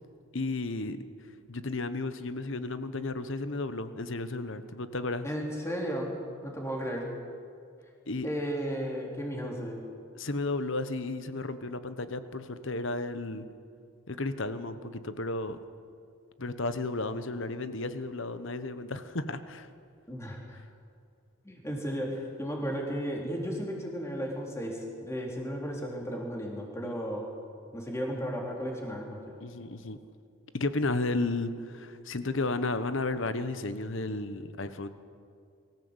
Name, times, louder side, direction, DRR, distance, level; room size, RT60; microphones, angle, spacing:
voice 1, 0.3-1.0 1.5-5.3 8.1-8.3 10.1-13.5 14.1-15.6 16.4-19.7 26.8-27.1 29.4-30.0 30.5-34.9, left 2 dB, 60° left, 11 dB, 1.1 m, -33 dB
voice 2, 5.2-6.1 6.4-7.0 8.2-9.8 20.1-20.6 21.4-27.3 27.7-29.2, equal, 15° left, -1 dB, 3.5 m, -34 dB
23.5 x 15.5 x 8.0 m, 2.4 s
head